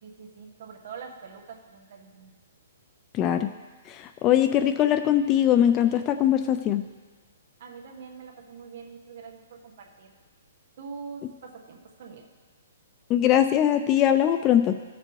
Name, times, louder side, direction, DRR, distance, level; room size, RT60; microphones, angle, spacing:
voice 1, 0.0-2.3 7.6-10.1 10.8-12.2, right 5 dB, 50° right, 1 dB, 1.4 m, -44 dB
voice 2, 3.1-3.5 3.9-6.8 13.1-14.7, left 10 dB, 20° left, 10 dB, 0.3 m, -21 dB
15.0 x 6.7 x 3.1 m, 1.4 s
hypercardioid pair, 160°, 0 cm